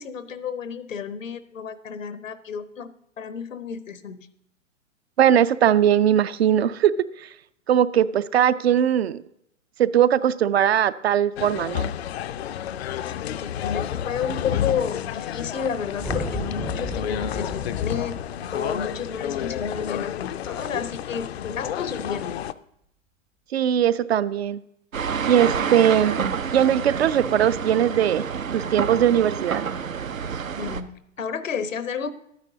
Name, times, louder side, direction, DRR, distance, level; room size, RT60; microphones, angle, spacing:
voice 1, 0.0-2.9 3.2-4.3 13.0-22.4 30.6-32.1, left 6 dB, 75° left, 14 dB, 0.9 m, -31 dB
voice 2, 5.2-6.9 7.2-7.3 7.7-9.2 9.8-11.9 23.5-24.6 25.2-26.2 26.5-28.2 28.5-29.7, right 10 dB, 55° right, 15 dB, 0.5 m, -20 dB
sound 1, 11.4-22.5, left 10 dB, 55° left, 0.5 m, -30 dB
sound 2, 16.0-20.4, equal, ahead, 0.4 m, -35 dB
sound 3, 24.9-30.8, right 6 dB, 85° right, 0.7 m, -28 dB
12.5 x 9.7 x 2.7 m, 0.77 s
figure-of-eight pair, 115°, 39 cm